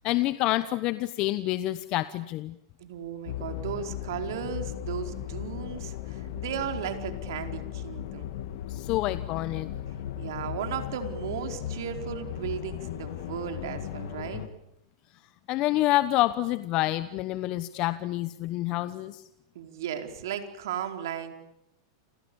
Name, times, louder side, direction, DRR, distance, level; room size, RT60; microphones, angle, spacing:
voice 1, 0.0-2.5 8.7-9.7 15.5-19.2, left 16 dB, 40° left, 13 dB, 1.1 m, -27 dB
voice 2, 2.8-8.4 10.2-14.4 19.5-21.3, right 9 dB, 70° right, 5 dB, 4.6 m, -35 dB
sound 1, 3.3-14.5, left 11 dB, 65° left, 2.5 m, -36 dB
30.0 x 27.5 x 7.2 m, 0.80 s
hypercardioid pair, 130°, 2 cm